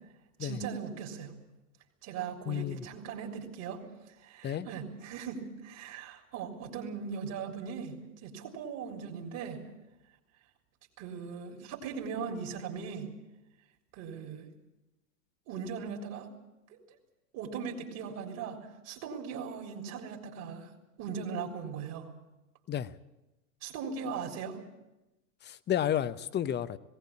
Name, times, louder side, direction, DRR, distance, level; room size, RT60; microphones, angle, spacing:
voice 1, 0.4-1.3 2.0-3.8 4.2-8.0 8.2-9.6 11.0-13.1 13.9-14.5 15.5-16.3 16.7-16.8 17.3-18.6 18.8-20.7 21.0-22.1 23.6-24.6, right 6 dB, 50° right, 3.6 m, -39 dB
voice 2, 2.5-2.8 4.4-4.7 22.7-22.9 25.4-26.8, left 10 dB, 25° left, 0.9 m, -31 dB
19.5 x 17.0 x 8.6 m
hypercardioid pair, 105°, 40 cm